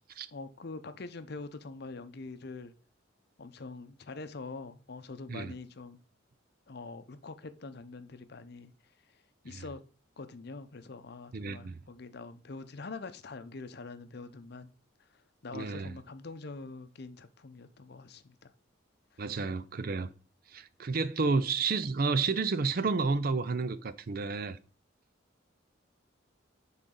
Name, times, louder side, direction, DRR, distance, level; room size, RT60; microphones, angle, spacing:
voice 1, 0.3-2.7 3.4-6.0 6.7-8.7 9.4-9.8 10.2-14.7 15.1-18.5 19.1-19.2, left 3 dB, 55° left, 0.6 m, -44 dB
voice 2, 11.3-11.8 15.5-15.9 19.2-20.1 20.5-24.6, right 4 dB, 50° right, 0.5 m, -31 dB
10.0 x 3.9 x 3.8 m
head